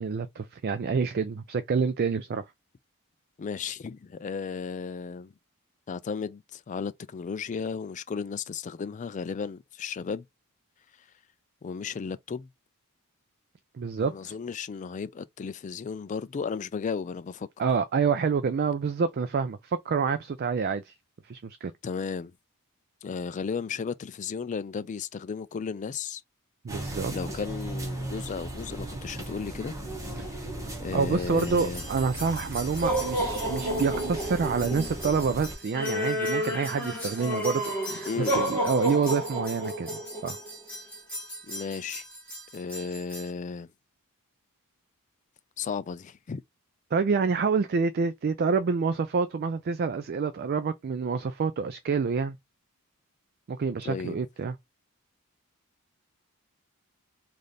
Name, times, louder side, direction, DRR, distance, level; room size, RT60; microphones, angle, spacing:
voice 1, 0.0-2.4 13.8-14.3 17.6-20.9 21.3-21.7 26.6-27.1 30.9-39.9 40.2-40.4 46.9-52.4 53.5-54.5, right 5 dB, 45° right, 0.4 m, -27 dB
voice 2, 3.4-5.3 5.9-10.2 11.6-12.5 14.0-17.5 21.8-22.3 23.0-26.2 27.1-29.7 30.2-30.3 30.8-31.9 38.1-38.6 41.5-42.0 42.5-43.7 45.6-46.4 53.9-54.2, left 5 dB, 35° left, 0.3 m, -34 dB
sound 1, 26.7-35.5, right 1 dB, 15° right, 0.9 m, -37 dB
sound 2, 31.4-43.3, right 1 dB, 5° left, 1.5 m, -32 dB
3.3 x 2.5 x 4.0 m
head